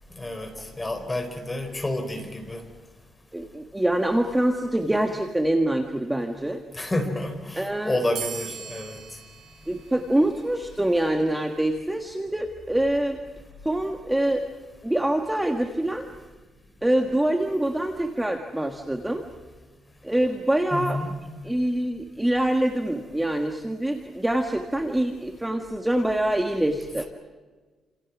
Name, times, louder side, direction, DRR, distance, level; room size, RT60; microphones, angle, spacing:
voice 1, 0.2-2.6 6.7-9.0 20.7-21.1 27.0-27.1, left 1 dB, 15° left, 5 dB, 4.2 m, -29 dB
voice 2, 3.3-6.6 7.6-8.0 9.7-13.2 13.6-14.4 14.8-16.1 16.8-19.2 20.0-21.0 21.4-27.0, right 1 dB, 5° right, 4 dB, 1.5 m, -25 dB
sound 1, 8.1-11.2, right 8 dB, 70° right, 6.7 m, -40 dB
29.5 x 27.5 x 6.1 m, 1.4 s
cardioid pair, 160°, 0 cm